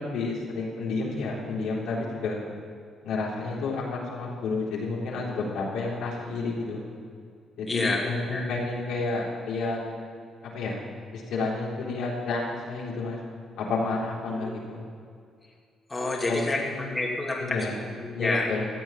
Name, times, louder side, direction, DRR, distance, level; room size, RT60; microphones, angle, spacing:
voice 1, 0.0-2.4 3.0-6.8 7.6-9.8 10.4-10.8 11.1-12.4 12.7-13.2 13.6-14.8 16.3-16.8 17.4-17.8 18.1-18.7, left 3 dB, 85° left, -4 dB, 3.8 m, -30 dB
voice 2, 7.7-8.4 14.2-14.6 15.9-18.5, left 2 dB, 20° left, -1 dB, 2.4 m, -29 dB
15.0 x 7.7 x 8.6 m, 2.2 s
cardioid pair, 90°, 0 cm